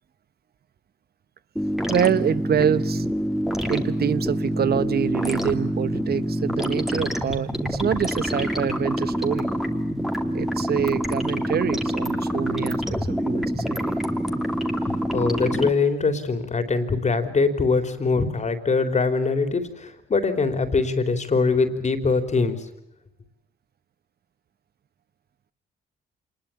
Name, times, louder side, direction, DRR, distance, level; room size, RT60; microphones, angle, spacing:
sound 1, 1.6-15.7, equal, ahead, 2.7 m, -26 dB
voice 1, 1.9-3.0 3.7-9.5 10.3-12.8 13.1-13.9, right 8 dB, 50° right, 1.1 m, -25 dB
voice 2, 14.8-22.7, left 4 dB, 35° left, 3.6 m, -23 dB
26.5 x 21.0 x 8.6 m
cardioid pair, 90°, 20 cm